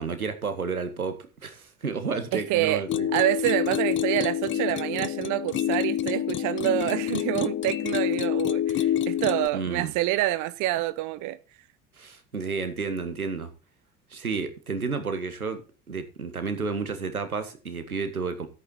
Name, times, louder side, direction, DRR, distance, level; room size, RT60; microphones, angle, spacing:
voice 1, 0.0-3.1 9.5-9.9 12.0-13.5 14.1-15.6 15.9-18.5, right 4 dB, 85° right, 1.6 m, -31 dB
voice 2, 2.3-2.8 3.1-11.4, right 15 dB, 45° right, 0.8 m, -27 dB
sound 1, 2.9-9.5, left 10 dB, 30° left, 0.7 m, -27 dB
14.0 x 8.6 x 4.2 m
figure-of-eight pair, 65°, 42 cm